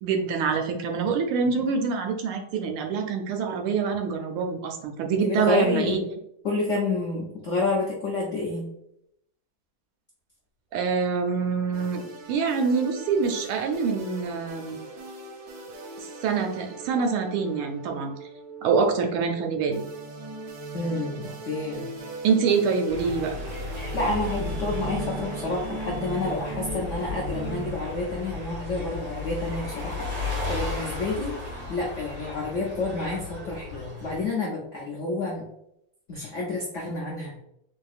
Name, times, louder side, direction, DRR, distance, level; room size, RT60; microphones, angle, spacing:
voice 1, 0.0-6.2 10.7-14.8 16.2-18.1 18.6-19.8 22.2-23.4, right 5 dB, 85° right, 4 dB, 1.5 m, -25 dB
voice 2, 5.2-6.0 6.4-8.7 20.7-21.9 23.9-31.4 31.7-35.4 36.1-37.4, left 3 dB, 85° left, -3 dB, 0.6 m, -29 dB
sound 1, 11.7-27.7, right 2 dB, 65° right, 1.5 m, -39 dB
sound 2, 22.9-34.3, left 3 dB, 35° right, 1.7 m, -34 dB
4.4 x 2.8 x 2.4 m, 0.77 s
omnidirectional pair, 2.3 m